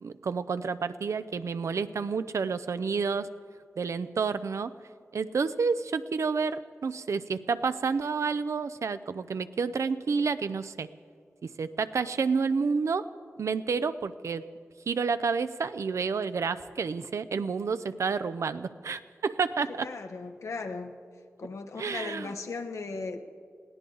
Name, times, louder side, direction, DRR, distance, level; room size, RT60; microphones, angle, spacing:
voice 1, 0.0-3.3 3.8-4.7 5.1-10.9 11.4-13.1 13.4-14.4 14.9-19.9 21.8-22.3, right 5 dB, 80° right, 13 dB, 0.6 m, -29 dB
voice 2, 19.7-20.9 21.4-23.2, left 4 dB, 85° left, 5 dB, 1.1 m, -37 dB
21.0 x 17.5 x 3.9 m, 2.2 s
wide cardioid pair, 75°, 5 cm